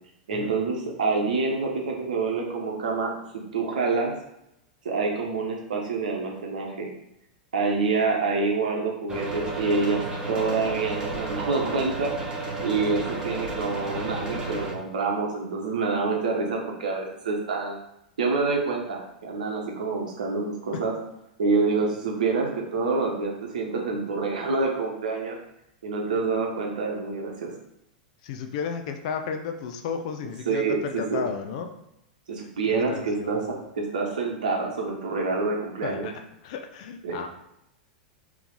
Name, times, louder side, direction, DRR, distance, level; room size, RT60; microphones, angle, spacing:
voice 1, 0.3-4.1 4.8-6.9 7.5-12.3 12.6-17.8 18.2-20.9 21.4-25.4 25.8-27.5 30.5-31.3 32.3-36.1 37.0-37.2, right 4 dB, 65° right, 0 dB, 0.9 m, -27 dB
sound 1, 9.1-14.7, right 2 dB, 20° right, 0.8 m, -32 dB
voice 2, 28.2-31.7 32.7-33.5 35.8-36.1 36.4-37.3, left 6 dB, 50° left, 6 dB, 0.5 m, -33 dB
3.4 x 3.1 x 3.8 m, 0.83 s
figure-of-eight pair, 90°, 5 cm